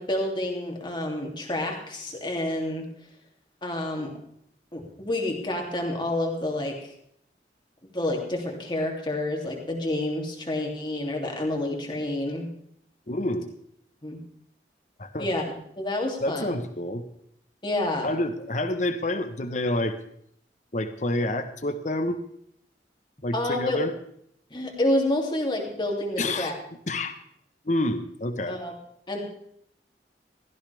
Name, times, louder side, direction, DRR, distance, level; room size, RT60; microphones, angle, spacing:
voice 1, 0.0-2.9 3.6-4.1 4.7-6.8 7.9-12.5 14.0-14.2 15.2-15.4 15.8-16.6 17.6-18.1 23.3-23.8 24.5-26.6 28.5-28.7 29.1-29.2, left 1 dB, 25° left, 1 dB, 3.0 m, -28 dB
voice 2, 13.1-13.5 15.0-15.3 16.2-17.0 18.0-20.0 20.7-22.2 23.2-23.9 26.2-26.6 26.9-27.1 27.6-28.6, left 1 dB, 45° left, 8 dB, 1.2 m, -28 dB
17.0 x 14.0 x 3.5 m, 0.70 s
head